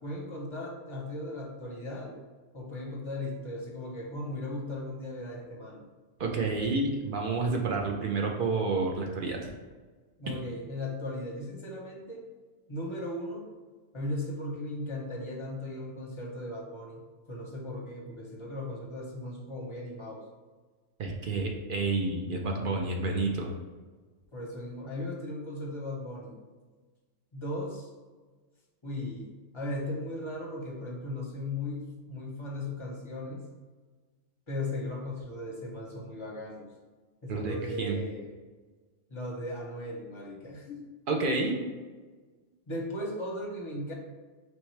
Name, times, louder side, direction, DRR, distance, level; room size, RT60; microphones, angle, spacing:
voice 1, 0.0-2.2 2.5-5.9 10.2-12.2 12.7-13.5 13.9-17.0 17.3-20.2 24.3-26.4 27.3-27.9 28.8-29.3 29.5-33.4 34.5-36.7 37.2-38.3 39.1-40.8 42.7-43.9, left 1 dB, 30° left, -1 dB, 0.7 m, -37 dB
voice 2, 6.2-9.5 10.3-10.4 21.0-23.5 37.3-37.9 41.1-41.6, right 3 dB, 55° right, 1 dB, 0.6 m, -29 dB
4.5 x 3.3 x 3.1 m, 1.4 s
omnidirectional pair, 1.4 m